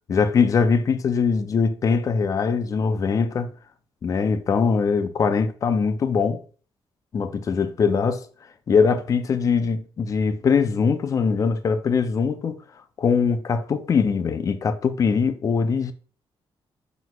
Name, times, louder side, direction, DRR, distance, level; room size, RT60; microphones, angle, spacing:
voice 1, 0.1-3.5 4.0-6.4 7.1-8.2 8.7-12.6 13.0-15.9, left 5 dB, 35° left, 0.3 m, -22 dB
5.7 x 3.0 x 2.2 m
wide cardioid pair, 155°, 10 cm